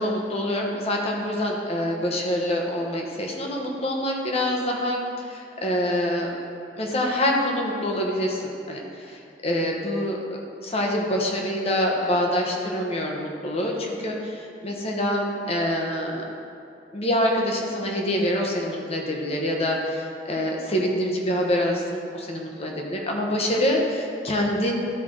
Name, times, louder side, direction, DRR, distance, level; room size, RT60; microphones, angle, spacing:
voice 1, 0.0-6.3 6.8-16.2 16.9-24.7, left 1 dB, 35° left, 0 dB, 1.1 m, -26 dB
12.5 x 4.6 x 3.8 m, 2.5 s
head